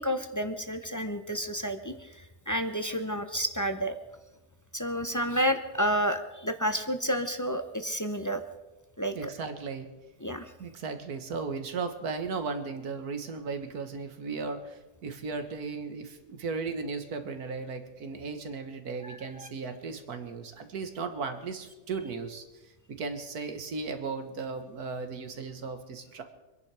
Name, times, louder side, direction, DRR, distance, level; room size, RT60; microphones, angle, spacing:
voice 1, 0.0-3.9 4.7-8.4 9.0-9.3 10.2-10.5 19.0-19.5, equal, 20° left, 8 dB, 0.6 m, -30 dB
voice 2, 9.2-9.9 10.6-26.2, right 4 dB, 80° right, 8 dB, 1.9 m, -36 dB
25.5 x 10.5 x 4.9 m, 1.0 s
omnidirectional pair, 1.6 m